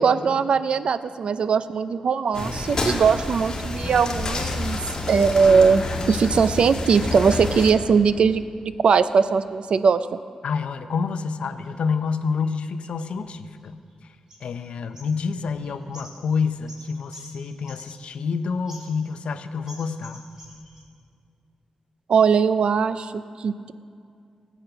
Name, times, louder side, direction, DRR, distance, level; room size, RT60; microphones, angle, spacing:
voice 1, 0.0-4.8 5.1-10.2 22.1-23.7, right 5 dB, 60° right, 13 dB, 0.4 m, -20 dB
sound 1, 2.3-7.7, left 2 dB, 35° left, 2.0 m, -28 dB
voice 2, 10.4-13.8 14.4-20.2, left 5 dB, 70° left, 10 dB, 0.6 m, -28 dB
sound 2, 11.5-11.7 12.4-13.9 14.3-14.7 14.9-18.3 18.6-19.3 19.7-20.8, equal, 30° right, 2.6 m, -48 dB
18.0 x 8.3 x 5.8 m, 2.3 s
wide cardioid pair, 155°, 2 cm